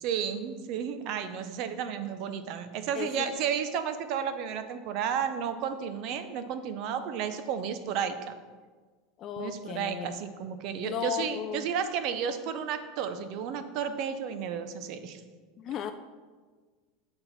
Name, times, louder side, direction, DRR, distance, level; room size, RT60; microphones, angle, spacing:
voice 1, 0.0-8.3 9.4-15.2, right 7 dB, 50° right, 9 dB, 0.6 m, -32 dB
voice 2, 2.9-3.3 9.2-10.2 10.8-11.7 15.6-15.9, left 8 dB, 30° left, 7 dB, 0.3 m, -35 dB
8.8 x 4.3 x 4.0 m, 1.4 s
supercardioid pair, 155°, 0 cm